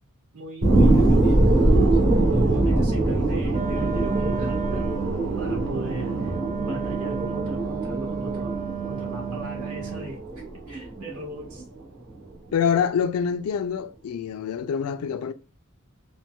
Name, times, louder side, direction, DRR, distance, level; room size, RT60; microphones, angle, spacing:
voice 1, 0.3-4.9 5.4-8.6 8.9-10.2 10.7-11.6, right 2 dB, 80° right, 1.4 m, -39 dB
sound 1, 0.6-11.6 12.1-12.2, right 2 dB, 60° right, 1.2 m, -23 dB
Wind instrument woodwind instrument, 3.5-10.1, right 7 dB, 40° right, 0.3 m, -32 dB
voice 2, 12.5-15.3, left 7 dB, 70° left, 0.3 m, -25 dB
4.2 x 2.2 x 2.2 m
head